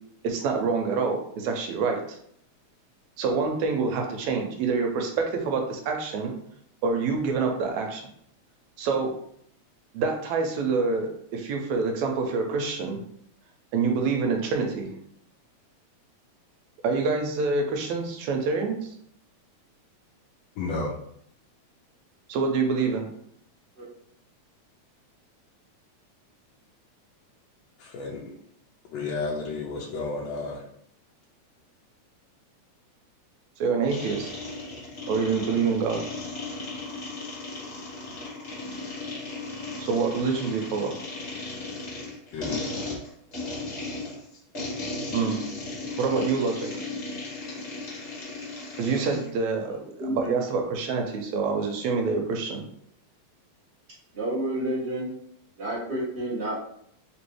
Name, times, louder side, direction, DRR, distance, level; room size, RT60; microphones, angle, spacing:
voice 1, 0.2-2.2 3.2-6.3 6.8-8.0 8.8-9.2 9.9-13.0 13.7-14.9 16.8-18.8 22.3-23.1 33.6-34.3 35.1-36.0 39.8-40.9 45.1-45.4 46.0-46.8 48.8-52.6, right 4 dB, 80° right, 3 dB, 1.9 m, -26 dB
voice 2, 20.6-20.9 27.8-28.4 28.9-30.6 42.3-42.6, left 3 dB, 75° left, -2 dB, 1.6 m, -32 dB
sound 1, 33.9-49.3, left 2 dB, 40° left, 0.9 m, -36 dB
voice 3, 50.0-50.3 54.1-55.1 55.6-56.5, right 1 dB, 35° right, -6 dB, 1.1 m, -29 dB
4.6 x 3.0 x 3.1 m, 0.68 s
omnidirectional pair, 3.4 m